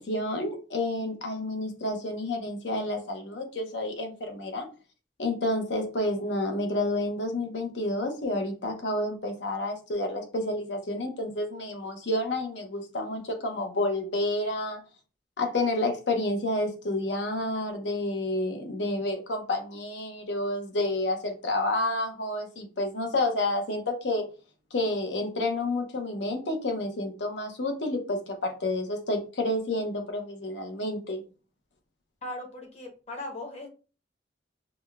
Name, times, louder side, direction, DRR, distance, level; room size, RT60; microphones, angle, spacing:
voice 1, 0.0-4.7 5.2-14.8 15.4-24.2 24.7-31.2, left 1 dB, 70° left, 5 dB, 0.8 m, -29 dB
voice 2, 32.2-33.7, left 1 dB, 35° left, 2 dB, 1.0 m, -38 dB
4.9 x 2.2 x 2.3 m, 0.34 s
head